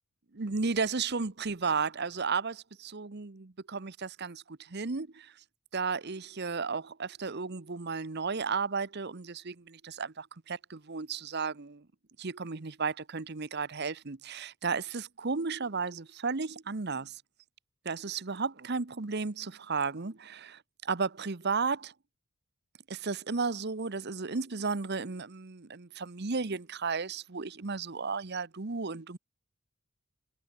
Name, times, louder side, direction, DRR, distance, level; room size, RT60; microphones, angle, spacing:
voice 1, 0.3-5.3 5.7-11.8 12.2-17.2 17.8-21.9 22.9-29.2, right 4 dB, 50° right, 0.9 m, -34 dB
head